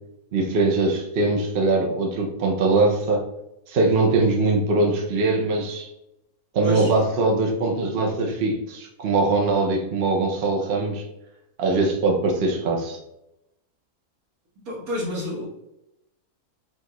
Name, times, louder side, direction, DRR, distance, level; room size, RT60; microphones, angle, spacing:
voice 1, 0.3-3.2 3.7-5.9 6.5-11.0 11.6-13.0, right 3 dB, 55° right, 1 dB, 0.8 m, -22 dB
voice 2, 14.7-15.5, left 1 dB, 70° right, -2 dB, 1.6 m, -28 dB
4.5 x 2.4 x 2.9 m, 0.86 s
omnidirectional pair, 1.6 m